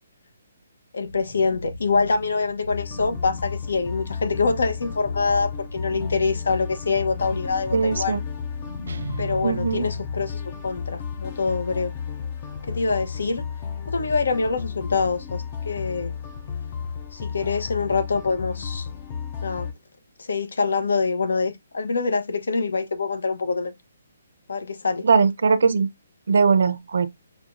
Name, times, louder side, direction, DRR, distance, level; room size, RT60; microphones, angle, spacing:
voice 1, 0.9-8.2 9.2-11.9 12.6-13.5 13.8-16.1 17.1-18.9 19.4-19.7 20.2-23.7 24.5-25.1, left 4 dB, 75° left, 1.0 m, -25 dB
sound 1, 1.0-9.6, left 1 dB, 55° left, 1.6 m, -39 dB
sound 2, 2.7-19.7, left 7 dB, 20° left, 0.5 m, -33 dB
voice 2, 7.7-8.2 9.4-9.9 25.0-25.9 26.3-27.1, right 5 dB, 55° right, 0.7 m, -20 dB
sound 3, 8.9-10.9, right 3 dB, 80° right, 1.0 m, -36 dB
6.0 x 2.3 x 2.6 m
hypercardioid pair, 180°, 0 cm